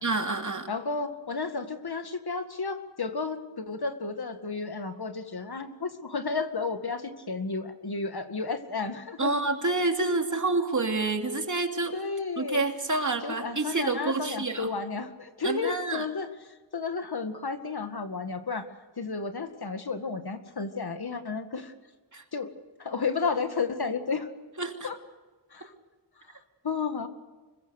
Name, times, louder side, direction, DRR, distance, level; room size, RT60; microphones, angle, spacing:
voice 1, 0.0-0.7 9.2-11.9 12.4-14.7 15.4-16.0 22.1-22.2 24.6-24.9, right 3 dB, 45° right, 4 dB, 2.9 m, -28 dB
voice 2, 0.7-9.3 11.9-12.7 13.2-16.3 16.7-18.7 19.0-21.7 22.3-22.5 22.8-24.3 24.8-25.0 25.5-25.7 26.3-26.4 26.6-27.1, left 4 dB, 60° left, 8 dB, 2.1 m, -32 dB
25.5 x 22.5 x 6.6 m, 1.3 s
wide cardioid pair, 70°, 43 cm